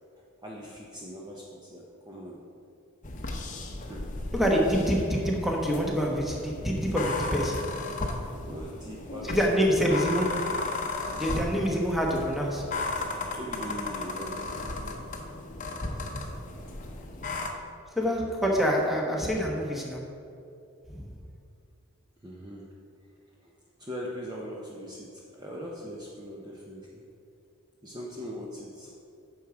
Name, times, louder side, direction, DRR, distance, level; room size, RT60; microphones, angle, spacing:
voice 1, 0.4-2.4 3.8-4.0 8.5-10.0 13.3-14.5 22.2-22.7 23.4-23.5 23.8-25.1 25.3-27.0 27.8-28.9, equal, 20° right, -4 dB, 0.7 m, -40 dB
sound 1, 3.0-17.5, left 2 dB, 35° left, 0.8 m, -35 dB
voice 2, 4.3-7.6 9.2-10.3 11.1-12.7 18.0-20.0 20.9-21.1, equal, ahead, -2 dB, 1.1 m, -26 dB
9.1 x 6.3 x 4.9 m, 2.5 s
head